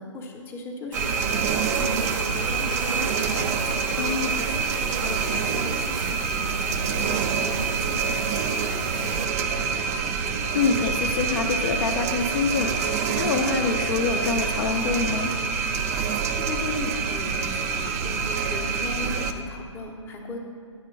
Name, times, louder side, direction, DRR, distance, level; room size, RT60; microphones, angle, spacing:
voice 1, 0.0-3.8 4.2-8.1 8.5-10.4 16.3-20.4, left 2 dB, 15° left, 0 dB, 0.7 m, -37 dB
sound 1, 0.9-19.3, right 5 dB, 30° right, 0.3 m, -26 dB
sound 2, 0.9-9.2, right 4 dB, 85° right, 0.5 m, -34 dB
voice 2, 3.9-4.5 10.5-15.4, left 5 dB, 45° left, 3 dB, 0.5 m, -26 dB
9.1 x 3.7 x 5.1 m, 2.1 s
hypercardioid pair, 135°, 16 cm